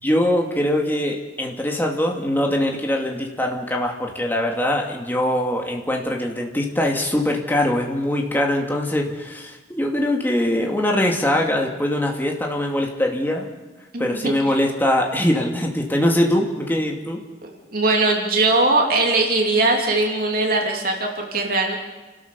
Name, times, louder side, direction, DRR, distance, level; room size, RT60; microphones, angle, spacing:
voice 1, 0.0-13.5 14.0-17.2, left 1 dB, 10° left, 0 dB, 2.4 m, -22 dB
voice 2, 13.9-14.6 17.4-21.7, right 2 dB, 55° right, 1 dB, 3.0 m, -20 dB
29.5 x 12.5 x 7.0 m, 1.2 s
head